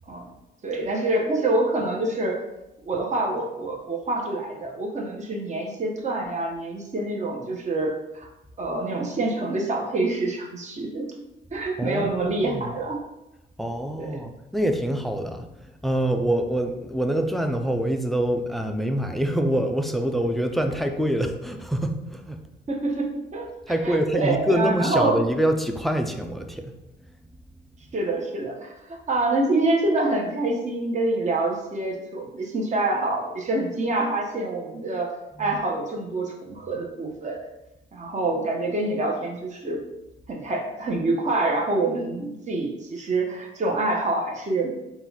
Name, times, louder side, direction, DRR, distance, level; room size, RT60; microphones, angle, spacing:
voice 1, 0.6-2.4 2.8-8.3 8.6-11.1 11.5-13.0 14.0-14.2 22.7-23.5 23.8-25.2 27.9-37.4 37.9-39.8 40.3-44.7, right 2 dB, 35° right, 1 dB, 0.9 m, -26 dB
voice 2, 11.8-12.6 13.6-22.4 23.7-26.7 35.4-35.6, right 1 dB, ahead, 6 dB, 0.4 m, -25 dB
3.9 x 2.3 x 4.1 m, 0.93 s
cardioid pair, 90°, 20 cm